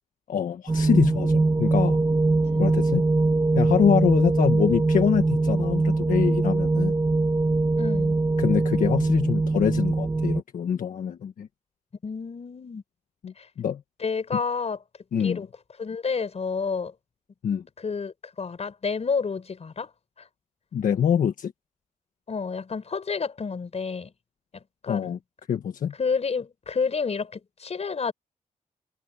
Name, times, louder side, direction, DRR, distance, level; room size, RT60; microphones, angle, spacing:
voice 1, 0.3-2.0 2.6-3.0 3.5-6.9 8.4-11.5 13.2-13.8 15.1-15.4 17.4-17.6 20.7-21.5 24.9-25.2 25.5-25.9, left 8 dB, 80° left, 1.5 m, -25 dB
sound 1, 0.7-10.4, right 3 dB, 25° right, 2.6 m, -22 dB
voice 2, 7.8-8.2 12.0-12.8 13.4-13.5 14.0-14.8 15.2-15.5 15.8-16.9 17.8-19.9 20.2-20.3 22.3-24.1 24.5-25.2 26.0-28.1, left 5 dB, 50° left, 4.7 m, -30 dB
cardioid pair, 75°, 14 cm